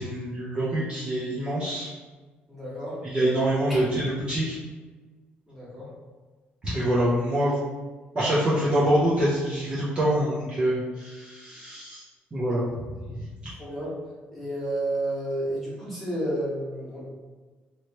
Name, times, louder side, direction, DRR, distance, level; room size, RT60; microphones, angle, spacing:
voice 1, 0.0-1.9 3.0-4.6 6.6-7.5 8.1-12.0 12.3-12.8 13.1-13.3, right 1 dB, 25° right, -9 dB, 0.8 m, -25 dB
voice 2, 2.5-3.0 3.7-3.8 5.5-5.9 13.6-13.9 14.3-17.0, right 1 dB, ahead, -9 dB, 1.3 m, -31 dB
3.0 x 3.0 x 2.9 m, 1.3 s
cardioid pair, 155°, 4 cm